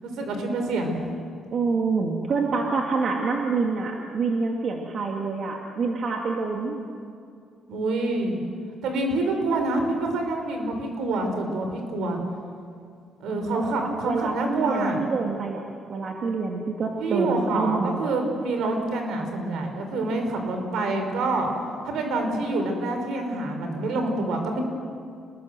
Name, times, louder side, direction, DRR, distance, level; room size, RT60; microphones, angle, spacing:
voice 1, 0.0-0.9 7.7-8.4 8.8-12.2 13.2-15.0 17.0-21.5 21.8-24.6, right 2 dB, 80° right, 4 dB, 5.3 m, -26 dB
voice 2, 1.5-6.9 13.3-18.1, right 4 dB, 55° right, 1 dB, 2.6 m, -27 dB
27.0 x 20.5 x 7.9 m, 2.4 s
cardioid pair, 90°, 0 cm